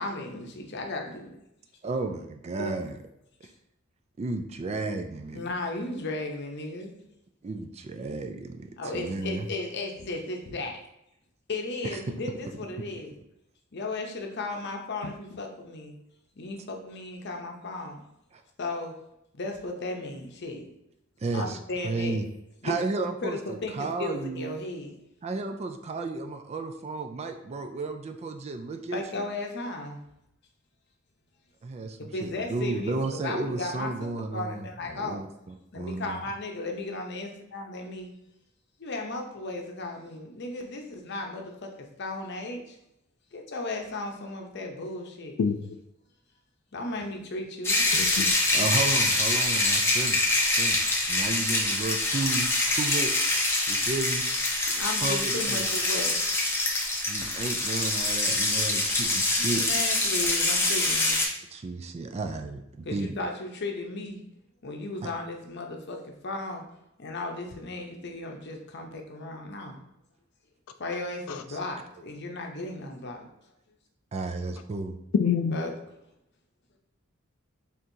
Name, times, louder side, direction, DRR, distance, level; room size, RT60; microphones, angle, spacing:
voice 1, 0.0-1.4 2.6-2.7 5.3-6.9 8.8-10.8 11.5-13.1 13.7-15.9 16.4-18.0 18.6-18.9 19.4-20.7 21.3-22.2 22.6-22.7 23.2-25.0 28.9-30.0 32.1-33.0 33.2-33.9 34.3-35.2 35.7-38.1 38.8-42.8 43.3-45.4 46.7-47.8 54.7-56.2 59.4-61.3 62.8-64.2 64.6-66.6 67.0-69.8 70.8-73.3 75.5-75.7, left 2 dB, 55° left, 0.7 m, -35 dB
voice 2, 1.8-3.0 4.2-5.5 7.4-9.5 11.9-12.0 18.3-18.4 21.2-21.6 21.8-22.3 22.6-24.5 25.2-29.3 31.6-36.2 48.5-50.2 50.5-50.8 51.1-53.1 53.7-54.2 55.0-55.6 57.1-59.6 61.5-63.2 65.0-65.1 71.5-71.6 74.1-75.0, right 3 dB, 30° right, 0.3 m, -33 dB
voice 3, 45.4-45.8 47.9-48.4 71.3-71.4 75.1-75.6, left 6 dB, 85° left, 0.3 m, -27 dB
sound 1, 47.6-61.3, left 2 dB, 10° left, 0.7 m, -25 dB
4.5 x 3.6 x 2.6 m
head